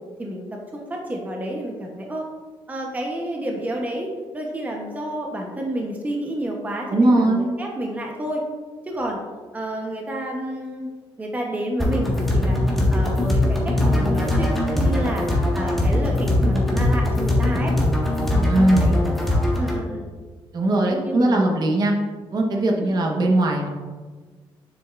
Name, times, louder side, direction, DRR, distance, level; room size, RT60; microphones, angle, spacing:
voice 1, 0.2-2.3 2.7-8.4 8.9-9.2 9.5-10.9 11.2-12.6 12.9-17.7 18.3-19.2 19.6-20.1 20.8-21.6 22.7-23.0, right 1 dB, 15° right, 0 dB, 0.9 m, -30 dB
voice 2, 6.9-7.5 18.5-19.0 20.5-21.9 22.3-23.7, right 1 dB, 45° right, 1 dB, 1.1 m, -20 dB
sound 1, 11.8-19.8, left 1 dB, ahead, 1.5 m, -21 dB
7.6 x 6.6 x 2.5 m, 1.4 s
cardioid pair, 120°, 10 cm